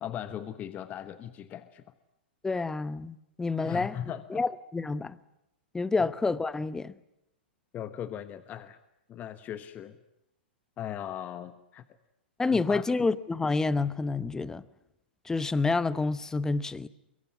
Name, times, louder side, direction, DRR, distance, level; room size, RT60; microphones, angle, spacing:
voice 1, 0.0-1.8 3.6-4.4 7.7-8.8 9.1-10.0 10.8-11.8 12.4-13.1, left 10 dB, 30° left, 1.2 m, -38 dB
voice 2, 2.4-3.9 4.3-5.2 5.7-6.9 12.4-14.6 15.3-16.9, left 3 dB, 10° left, 0.9 m, -28 dB
23.5 x 22.5 x 9.5 m
hypercardioid pair, 110°, 6 cm